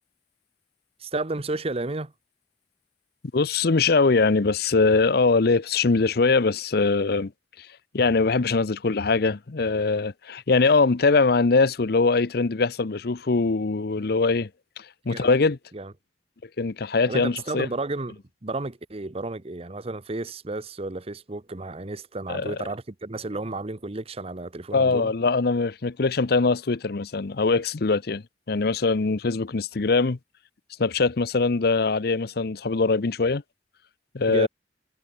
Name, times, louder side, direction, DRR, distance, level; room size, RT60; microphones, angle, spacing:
voice 1, 1.0-2.1 15.1-15.3 15.7-15.9 17.1-18.1 18.4-25.1 34.3-34.5, right 2 dB, 35° right, 1.0 m, -32 dB
voice 2, 3.3-7.3 7.6-7.7 7.9-14.5 14.8-15.6 16.6-17.7 22.3-22.6 24.7-30.2 30.8-33.4 34.1-34.5, left 4 dB, 60° left, 0.7 m, -22 dB
head